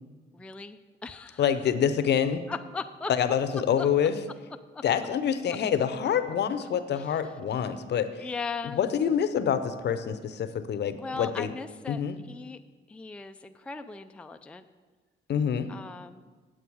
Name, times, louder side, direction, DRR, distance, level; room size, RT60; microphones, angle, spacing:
voice 1, 0.3-1.5 2.5-3.1 3.8-3.9 4.7-4.8 6.6-7.2 8.2-8.8 11.0-12.6 12.9-14.6 15.7-16.2, left 4 dB, 5° left, 8 dB, 0.3 m, -38 dB
voice 2, 1.4-2.4 3.1-4.1 4.8-8.3 8.7-11.5 11.9-12.2 15.3-15.7, left 8 dB, 60° left, 11 dB, 0.7 m, -26 dB
8.5 x 8.0 x 4.7 m, 1.4 s
cardioid pair, 90°, 20 cm